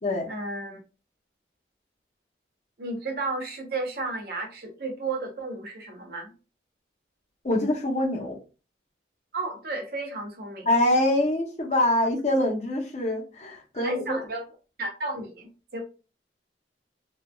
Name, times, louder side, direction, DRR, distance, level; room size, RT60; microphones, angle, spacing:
voice 1, 0.3-0.8 2.8-6.3 9.3-10.7 13.7-14.4 14.8-15.8, right 2 dB, 55° right, 2 dB, 0.8 m, -33 dB
voice 2, 7.4-8.4 10.7-14.0, left 1 dB, 40° left, 0 dB, 0.7 m, -24 dB
3.0 x 2.4 x 2.2 m, 0.33 s
head